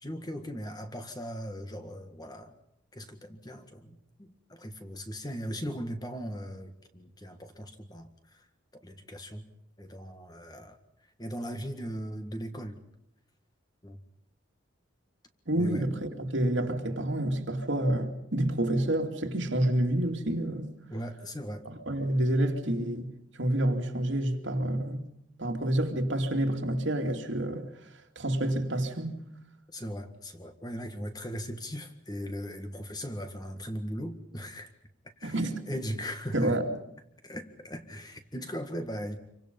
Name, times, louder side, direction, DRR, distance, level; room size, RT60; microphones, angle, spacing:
voice 1, 0.0-2.5 2.9-8.4 8.7-9.4 9.8-10.8 11.2-12.8 13.8-14.0 15.5-15.9 20.9-21.7 29.7-34.7 35.2-36.6 37.2-39.2, equal, 20° left, 1.8 m, -38 dB
voice 2, 15.5-20.7 21.6-23.1 23.3-25.0 25.4-29.2 35.2-35.6 36.3-36.6, right 1 dB, 65° right, 2.6 m, -28 dB
27.5 x 24.5 x 5.4 m
head